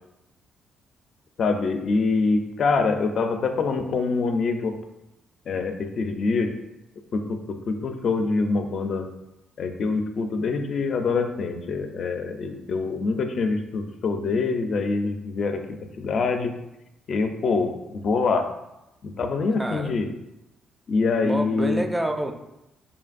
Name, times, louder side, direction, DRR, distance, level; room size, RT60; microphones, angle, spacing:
voice 1, 1.4-4.7 5.5-6.5 7.1-9.1 9.6-15.6 16.0-16.5 17.1-18.5 19.0-20.1 20.9-21.9, left 4 dB, 55° left, 6 dB, 0.4 m, -25 dB
voice 2, 19.5-19.9 21.2-22.3, right 1 dB, 15° right, 5 dB, 0.4 m, -27 dB
5.2 x 2.5 x 2.4 m, 0.91 s
cardioid pair, 90°, 0 cm